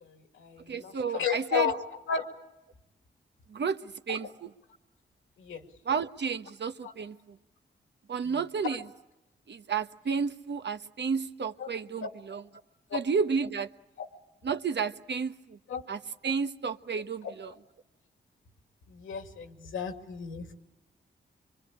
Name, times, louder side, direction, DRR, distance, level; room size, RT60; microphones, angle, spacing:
voice 1, 0.0-1.8 2.1-2.3 4.1-4.3 5.4-5.7 6.8-6.9 8.2-8.8 11.6-11.7 12.0-12.1 12.9-13.0 14.0-14.1 15.7-15.8 17.2-17.3 18.9-20.5, left 7 dB, 85° left, 5 dB, 2.5 m, -34 dB
voice 2, 0.7-1.7 3.5-4.3 5.9-7.2 8.1-8.8 9.5-12.4 12.9-13.7 14.4-15.6 15.9-16.0 16.2-17.5, right 5 dB, 60° right, 9 dB, 1.2 m, -31 dB
25.0 x 23.5 x 8.7 m, 0.96 s
supercardioid pair, 40°, 20 cm